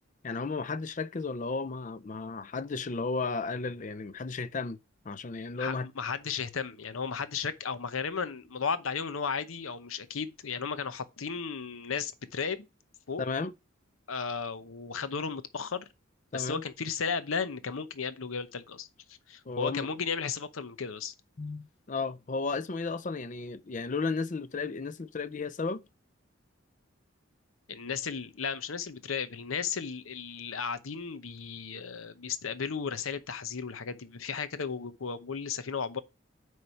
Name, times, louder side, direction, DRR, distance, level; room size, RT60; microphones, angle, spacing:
voice 1, 0.2-4.8 5.0-5.9 13.2-13.5 16.3-16.6 19.5-19.9 21.4-25.8, left 4 dB, 40° left, 0.4 m, -34 dB
voice 2, 5.6-12.7 13.1-13.2 14.1-15.9 16.3-21.1 27.7-36.0, left 6 dB, 85° left, 0.8 m, -35 dB
9.3 x 3.2 x 5.6 m
head